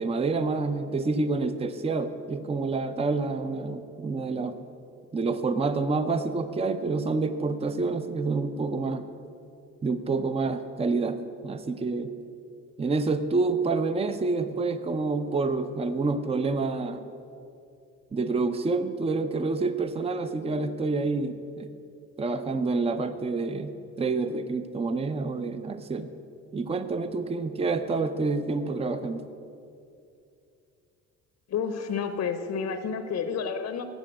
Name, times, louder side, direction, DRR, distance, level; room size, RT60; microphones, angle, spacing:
voice 1, 0.0-4.6 5.1-9.1 9.8-12.1 12.8-17.0 18.1-21.7 22.2-26.1 26.5-29.2, right 3 dB, 20° right, 11 dB, 0.5 m, -28 dB
voice 2, 31.5-33.9, left 6 dB, 60° left, 9 dB, 0.8 m, -30 dB
9.0 x 7.1 x 7.5 m, 2.5 s
cardioid pair, 90°, 30 cm